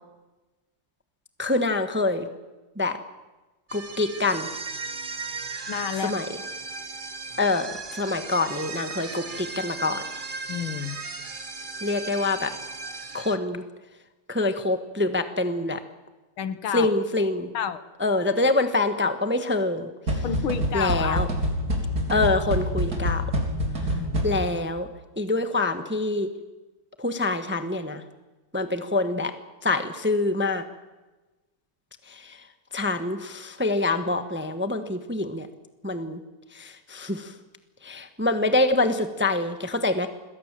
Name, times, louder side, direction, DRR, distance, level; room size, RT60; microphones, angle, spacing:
voice 1, 1.4-2.3 2.8-3.0 3.7-4.5 6.0-6.2 7.4-10.0 11.8-12.5 13.1-13.6 14.3-15.8 16.7-17.5 18.0-20.2 20.7-21.3 22.1-23.2 24.2-24.9 25.2-26.3 27.0-28.0 28.5-29.3 29.6-30.6 32.1-32.4 32.7-35.5 35.8-36.2 36.5-37.3 37.8-40.1, left 2 dB, 5° right, 8 dB, 1.0 m, -25 dB
sound 1, 3.7-13.4, right 4 dB, 30° right, 1.2 m, -36 dB
voice 2, 5.7-6.2 10.5-11.0 16.4-16.9 17.5-17.8 20.2-21.2 23.8-24.3, left 8 dB, 70° left, 13 dB, 2.0 m, -30 dB
sound 2, 20.1-24.7, equal, 45° right, 4.4 m, -26 dB
27.0 x 20.5 x 7.6 m, 1.2 s
omnidirectional pair, 2.4 m